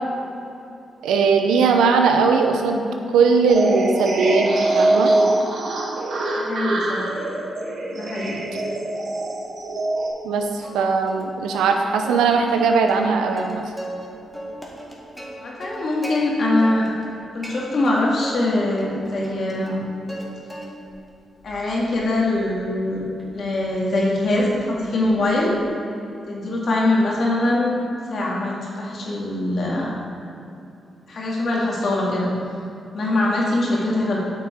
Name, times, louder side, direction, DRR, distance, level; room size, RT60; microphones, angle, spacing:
voice 1, 1.0-5.1 10.2-13.6, right 4 dB, 90° right, 4 dB, 0.7 m, -19 dB
sound 1, 3.5-10.1, right 2 dB, 65° right, 1.3 m, -23 dB
voice 2, 6.3-7.0 7.9-8.4 15.4-16.9 17.3-19.8 21.4-23.0 23.3-25.5 26.3-27.9 28.1-29.9 31.1-32.3 32.9-34.2, left 2 dB, 65° left, -4 dB, 2.0 m, -22 dB
Plucked string instrument, 10.6-11.2 11.5-11.6 12.0-14.1 14.3-16.2 16.6-17.1 17.4-18.4 18.8-20.2 20.5-21.0 21.4-25.6, right 1 dB, 5° right, 1.9 m, -38 dB
8.6 x 6.1 x 4.5 m, 2.8 s
supercardioid pair, 55°, 0 cm